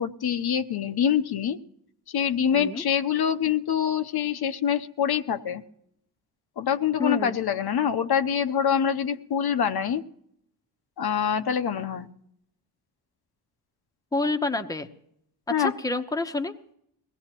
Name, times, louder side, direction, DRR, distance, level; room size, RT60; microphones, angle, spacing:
voice 1, 0.0-1.6 2.1-5.6 6.6-10.0 11.0-12.1 15.5-15.7, left 8 dB, 65° left, 8 dB, 0.9 m, -25 dB
voice 2, 2.5-2.8 7.0-7.4 14.1-14.9 15.6-16.5, left 3 dB, 10° left, 7 dB, 0.9 m, -28 dB
22.5 x 17.5 x 3.0 m, 0.73 s
wide cardioid pair, 120°, 41 cm